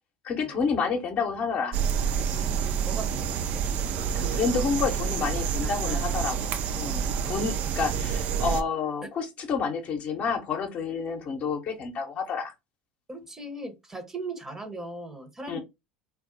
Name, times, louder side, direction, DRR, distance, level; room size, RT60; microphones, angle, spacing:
voice 1, 0.2-1.8 4.1-12.5 15.5-15.6, left 5 dB, 45° left, 0.8 m, -29 dB
sound 1, 1.7-8.6, right 7 dB, 50° right, 0.4 m, -28 dB
voice 2, 2.8-3.6 5.9-6.2 6.8-7.8 9.0-9.1 13.1-15.6, right 2 dB, 15° right, 0.9 m, -39 dB
2.3 x 2.0 x 3.8 m
hypercardioid pair, 80°, 3 cm